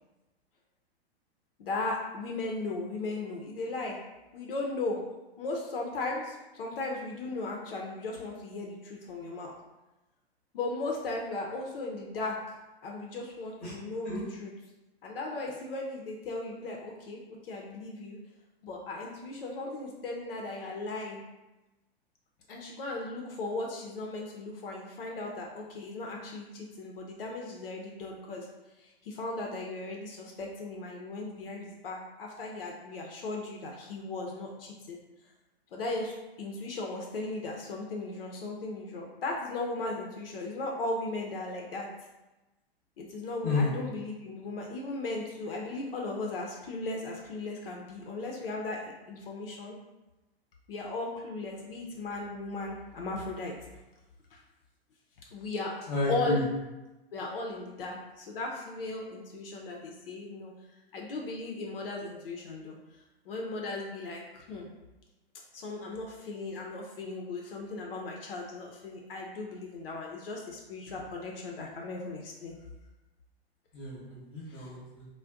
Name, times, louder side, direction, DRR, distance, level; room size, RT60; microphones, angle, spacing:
voice 1, 1.6-4.0 4.3-5.0 5.4-9.5 10.5-12.6 12.8-14.5 15.0-18.2 18.6-21.2 22.5-28.5 28.8-35.0 35.7-41.9 43.0-49.7 50.7-53.6 54.3-54.4 55.3-55.8 56.1-56.4 57.1-60.5 60.9-64.7 65.5-72.5 74.5-74.7, left 2 dB, 60° left, 0 dB, 0.5 m, -37 dB
voice 2, 55.9-56.4 73.7-75.1, left 3 dB, 30° left, -8 dB, 0.8 m, -31 dB
2.5 x 2.1 x 3.4 m, 1.0 s
hypercardioid pair, 115°, 32 cm